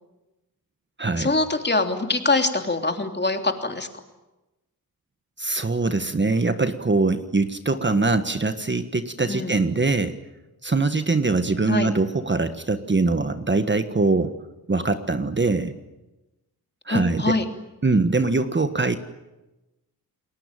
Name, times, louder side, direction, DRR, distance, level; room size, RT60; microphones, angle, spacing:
voice 1, 1.2-3.9 9.3-9.5 11.7-11.9 16.9-17.5, left 3 dB, 30° left, 5 dB, 3.2 m, -24 dB
voice 2, 5.4-10.2 10.6-14.3 14.7-15.7 16.9-17.3 17.8-19.0, right 3 dB, 30° right, 9 dB, 1.5 m, -22 dB
30.0 x 21.0 x 9.1 m, 1.0 s
wide cardioid pair, 100°, 37 cm